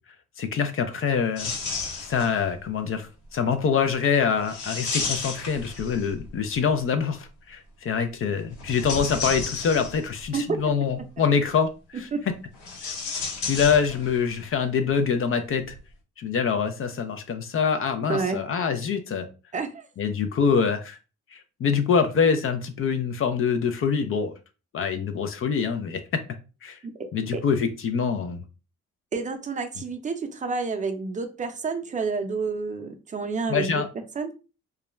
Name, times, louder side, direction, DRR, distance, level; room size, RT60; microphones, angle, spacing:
voice 1, 0.4-1.5 2.1-12.1 12.8-12.9 13.4-15.7 16.2-19.3 20.0-21.0 21.3-24.3 24.7-26.0 26.6-26.8 27.1-28.4 33.5-33.9, left 6 dB, 45° left, 7 dB, 0.4 m, -25 dB
sound 1, 1.4-2.5 4.4-6.3 8.5-10.3 12.5-14.3 14.6-14.7 15.6-15.8, left 4 dB, 85° left, 1.0 m, -32 dB
voice 2, 18.1-18.4 19.5-19.8 27.3-27.4 29.1-33.8 34.2-34.3, right 4 dB, 25° right, 6 dB, 0.5 m, -29 dB
2.3 x 2.1 x 3.0 m, 0.33 s
cardioid pair, 90°, 30 cm